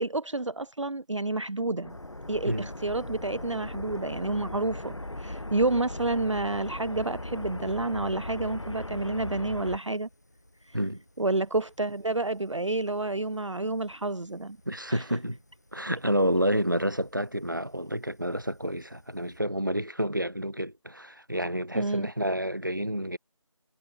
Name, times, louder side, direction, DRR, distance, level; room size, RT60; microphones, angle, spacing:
voice 1, 0.0-2.0 2.3-10.1 10.6-10.8 11.2-14.6 14.9-15.0 21.7-22.1, right 2 dB, 60° right, 0.6 m, -29 dB
sound 1, 1.8-9.8, left 1 dB, 60° left, 0.9 m, -38 dB
Fire, 1.9-19.4, left 1 dB, 30° left, 6.7 m, -62 dB
sound 2, 4.1-20.9, left 3 dB, 5° left, 5.4 m, -78 dB
voice 2, 14.6-15.4 15.7-23.2, equal, 40° right, 1.5 m, -29 dB
figure-of-eight pair, 175°, 17 cm